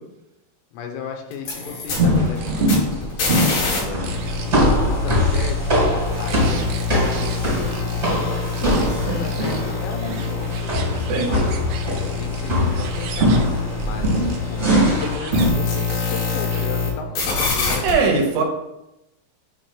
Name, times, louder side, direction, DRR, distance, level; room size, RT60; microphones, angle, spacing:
voice 1, 0.7-4.2 4.5-5.8 6.1-11.5 12.0-14.6 15.0-18.1, left 6 dB, 85° left, 3 dB, 3.5 m, -35 dB
sound 1, 1.3-16.9 17.1-17.9, left 5 dB, 55° left, 3.2 m, -26 dB
sound 2, 2.0-15.5, equal, 30° right, 1.3 m, -22 dB
sound 3, 2.2-2.9 3.2-3.3 3.8-4.7 5.1-7.4 7.7-8.1 8.5-8.9 9.2-14.4 14.9-15.4 15.8-16.8, right 7 dB, 85° right, 2.2 m, -38 dB
voice 2, 17.8-18.4, right 4 dB, 70° right, 1 dB, 2.8 m, -20 dB
8.6 x 3.0 x 5.7 m, 0.93 s
omnidirectional pair, 5.6 m